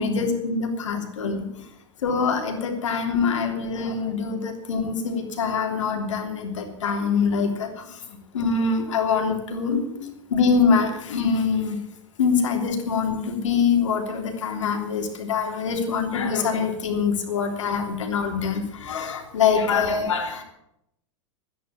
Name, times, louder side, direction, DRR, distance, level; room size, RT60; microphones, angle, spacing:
voice 1, 0.0-1.5 2.0-7.8 8.3-11.8 12.2-20.4, left 5 dB, 80° left, 2 dB, 3.3 m, -24 dB
12.5 x 10.0 x 8.5 m, 0.81 s
hypercardioid pair, 105°, 16 cm